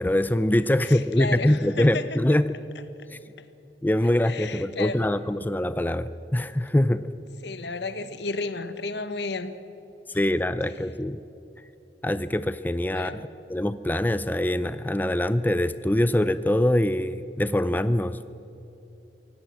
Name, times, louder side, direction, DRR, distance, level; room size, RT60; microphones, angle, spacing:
voice 1, 0.0-2.6 3.8-7.0 10.1-11.2 12.0-18.2, left 1 dB, 10° left, 13 dB, 0.5 m, -24 dB
voice 2, 0.8-2.4 4.2-5.0 7.4-9.5 10.3-10.4 12.8-13.2, left 3 dB, 70° left, 11 dB, 1.4 m, -33 dB
25.5 x 17.5 x 7.6 m, 2.9 s
head